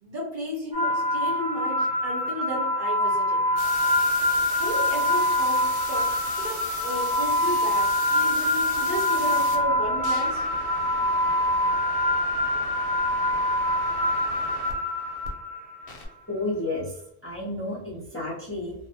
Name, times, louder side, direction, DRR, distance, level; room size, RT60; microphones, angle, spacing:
voice 1, 0.0-3.4 4.6-6.1 6.4-10.4, equal, 50° right, -4 dB, 0.8 m, -34 dB
sound 1, 0.7-15.8, left 1 dB, 80° right, 1.1 m, -25 dB
sound 2, 3.6-15.3 15.9-16.1, left 4 dB, 65° left, 0.7 m, -39 dB
voice 2, 16.3-16.9 17.2-18.7, left 2 dB, 15° left, -6 dB, 0.5 m, -31 dB
2.4 x 2.1 x 2.7 m, 0.74 s
omnidirectional pair, 1.1 m